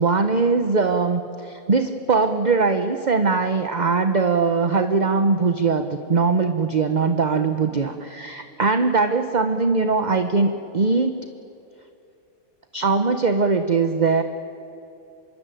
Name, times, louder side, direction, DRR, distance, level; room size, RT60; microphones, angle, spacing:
voice 1, 0.0-11.2 12.7-14.2, right 4 dB, 35° right, 8 dB, 0.8 m, -21 dB
25.5 x 22.5 x 9.2 m, 2.7 s
omnidirectional pair, 1.9 m